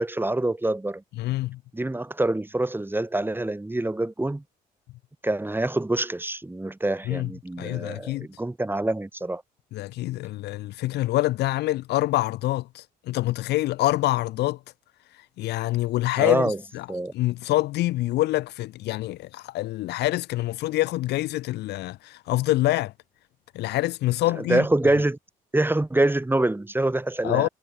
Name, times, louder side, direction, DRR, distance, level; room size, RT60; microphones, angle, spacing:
voice 1, 0.0-1.0 1.7-4.4 5.2-9.4 16.2-16.6 16.9-17.1 24.4-25.2 25.5-27.5, right 2 dB, 10° right, 1.5 m, -25 dB
voice 2, 1.2-1.6 7.1-7.3 7.6-8.3 9.7-14.6 15.4-16.9 17.1-22.9 23.5-24.6 27.2-27.5, left 17 dB, 75° left, 0.4 m, -26 dB
supercardioid pair, 60°, 17 cm